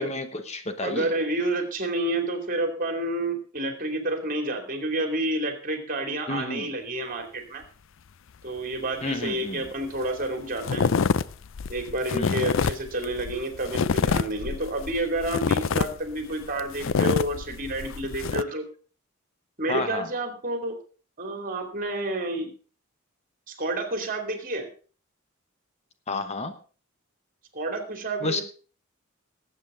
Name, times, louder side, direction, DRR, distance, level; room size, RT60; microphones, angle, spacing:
voice 1, 0.0-1.1 6.3-6.7 9.0-9.7 12.1-12.4 19.7-20.1 26.1-26.6 28.2-28.4, left 2 dB, 30° left, 9 dB, 1.0 m, -31 dB
voice 2, 0.8-7.6 8.4-10.9 11.7-18.6 19.6-20.8 21.2-22.5 23.5-24.7 27.5-28.4, right 1 dB, 40° right, 6 dB, 2.8 m, -29 dB
sound 1, 9.7-9.8 10.0-10.3 10.6-18.4, left 5 dB, 65° left, 0.5 m, -26 dB
19.0 x 8.2 x 3.8 m, 0.38 s
head